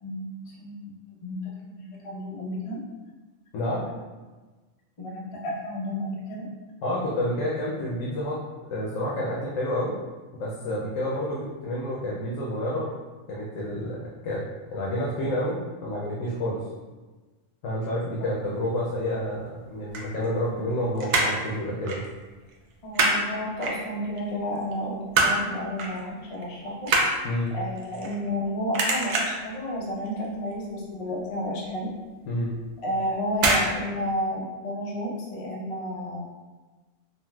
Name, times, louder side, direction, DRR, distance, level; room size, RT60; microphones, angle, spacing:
voice 1, 0.0-0.8 1.2-2.8 5.0-6.5 22.8-26.9 27.5-31.9 32.8-36.2, equal, 45° left, -4 dB, 0.4 m, -31 dB
voice 2, 3.5-3.9 6.8-8.4 8.7-10.0 10.3-12.9 13.3-14.4 14.7-16.6 17.6-22.0 27.2-27.5 32.3-32.5, left 1 dB, 90° left, -5 dB, 1.0 m, -29 dB
sound 1, 19.7-20.7 21.0-21.5 21.8-22.1 22.3-23.2 23.6-24.2 24.6-25.4 25.8-26.0 26.3-28.4 28.7-29.5 29.9-30.3 30.5-30.6 31.0-31.1 31.5-31.6 32.5-32.7 33.3-33.7 34.0-34.1, right 2 dB, 75° right, 0.4 m, -24 dB
3.8 x 2.1 x 2.3 m, 1.3 s
omnidirectional pair, 1.3 m